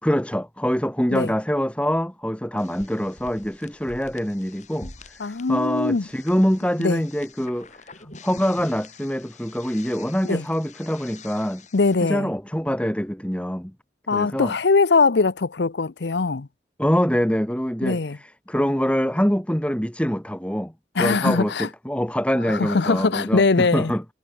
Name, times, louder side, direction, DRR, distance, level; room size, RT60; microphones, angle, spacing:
voice 1, 0.0-7.8 8.2-11.6 12.0-13.7 14.1-14.5 16.8-20.7 21.0-24.0, equal, 5° left, 1.9 m, -24 dB
sound 1, 2.6-11.9, left 3 dB, 40° left, 7.1 m, -46 dB
voice 2, 5.2-6.0 6.8-7.0 10.2-10.4 11.7-12.3 14.1-16.5 17.8-18.2 21.0-21.7 22.5-23.9, left 4 dB, 70° left, 0.7 m, -21 dB
head